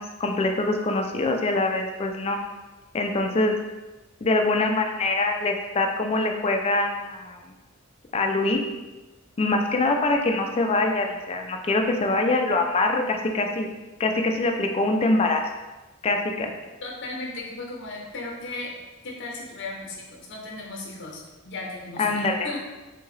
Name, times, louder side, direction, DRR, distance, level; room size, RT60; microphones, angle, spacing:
voice 1, 0.0-2.4 2.9-3.5 4.2-7.5 8.1-8.6 9.4-13.7 14.0-15.4 16.0-16.5 22.0-22.5, left 2 dB, 30° left, 4 dB, 0.3 m, -24 dB
voice 2, 16.8-18.8 19.0-22.6, left 2 dB, 60° left, -1 dB, 0.8 m, -36 dB
3.6 x 2.7 x 3.1 m, 1.1 s
head